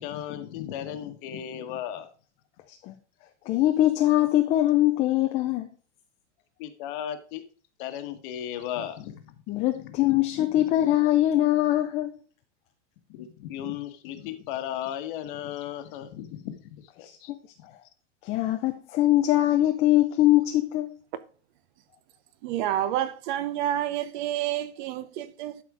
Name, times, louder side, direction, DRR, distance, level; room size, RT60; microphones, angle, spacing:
voice 1, 0.0-2.1 6.6-7.4 7.8-9.4 9.7-10.2 10.5-10.6 13.1-17.3 17.6-17.7, left 10 dB, 45° left, 1.3 m, -36 dB
voice 2, 3.5-5.7 9.5-12.1 18.2-20.9, left 14 dB, 20° left, 0.4 m, -22 dB
voice 3, 22.4-25.6, right 12 dB, 40° right, 0.7 m, -29 dB
12.0 x 4.3 x 4.8 m
supercardioid pair, 155°, 35 cm